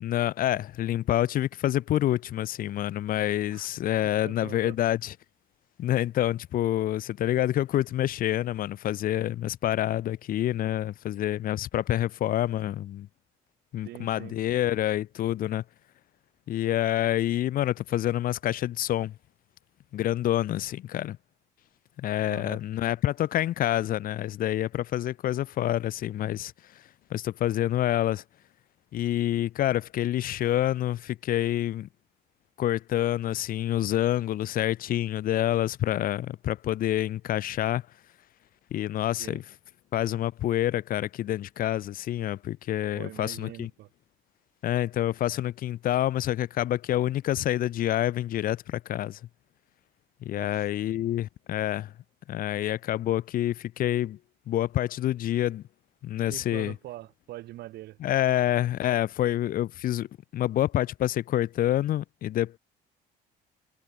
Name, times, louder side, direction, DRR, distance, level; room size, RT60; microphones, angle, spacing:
voice 1, 0.0-5.1 5.8-13.1 13.7-15.6 16.5-19.2 19.9-21.2 22.0-28.2 28.9-31.9 32.6-37.9 38.7-39.4 39.9-43.7 44.6-49.2 50.2-51.9 52.3-54.2 54.5-55.6 56.0-56.8 58.0-62.6, left 13 dB, 60° left, 0.7 m, -27 dB
voice 2, 4.2-4.8 13.8-14.4 22.3-22.6 39.2-39.4 42.9-43.9 50.3-50.6 56.3-58.0, right 16 dB, 75° right, 1.6 m, -43 dB
cardioid pair, 110°, 17 cm